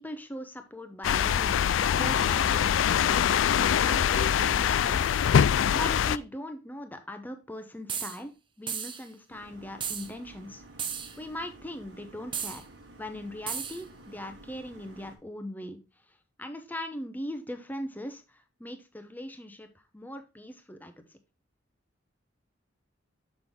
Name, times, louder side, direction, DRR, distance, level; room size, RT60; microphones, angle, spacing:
voice 1, 0.0-5.2 5.7-8.3 8.6-10.6 11.2-12.6 13.0-15.8 16.4-19.7 19.9-20.9, left 1 dB, 10° left, 7 dB, 0.9 m, -40 dB
sound 1, 1.0-6.2, left 8 dB, 80° left, 0.3 m, -24 dB
sound 2, 7.9-8.2 8.7-9.0 9.8-10.1 10.8-11.2 12.3-12.6 13.5-13.8, right 7 dB, 25° right, 0.7 m, -34 dB
sound 3, 9.3-15.2, right 2 dB, 75° right, 1.7 m, -52 dB
6.7 x 5.9 x 3.6 m, 0.30 s
head